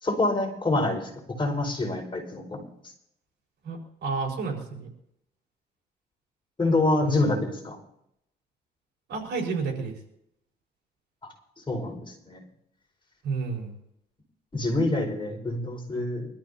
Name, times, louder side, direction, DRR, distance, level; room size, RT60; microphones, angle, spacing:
voice 1, 0.0-1.1 1.4-2.6 6.6-7.8 11.7-12.4 14.5-16.3, left 2 dB, 25° left, 0 dB, 5.2 m, -26 dB
voice 2, 3.6-4.9 7.0-7.4 9.1-9.9 13.2-13.8, right 4 dB, 75° right, 0 dB, 5.0 m, -31 dB
24.5 x 13.5 x 2.9 m, 0.77 s
cardioid pair, 90°, 18 cm